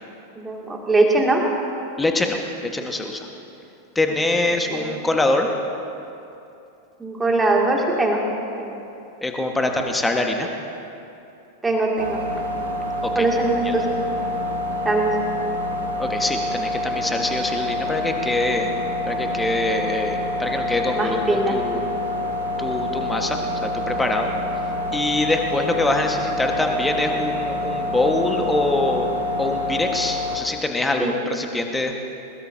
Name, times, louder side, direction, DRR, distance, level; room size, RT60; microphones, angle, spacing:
voice 1, 0.4-1.4 4.7-5.1 7.0-8.2 8.6-8.8 11.6-12.2 13.1-13.9 14.8-15.1 20.9-21.6 31.0-31.1, right 2 dB, 10° right, -1 dB, 2.5 m, -21 dB
voice 2, 2.0-2.4 2.7-3.3 3.9-5.5 9.2-10.5 13.0-13.3 13.6-13.7 16.0-18.7 19.0-21.8 22.6-24.3 24.9-29.1 29.4-32.0, left 2 dB, 10° left, 3 dB, 1.5 m, -24 dB
sound 1, 12.0-30.4, left 1 dB, 65° right, 1.8 m, -27 dB
21.0 x 21.0 x 2.8 m, 2.8 s
figure-of-eight pair, 90°, 0 cm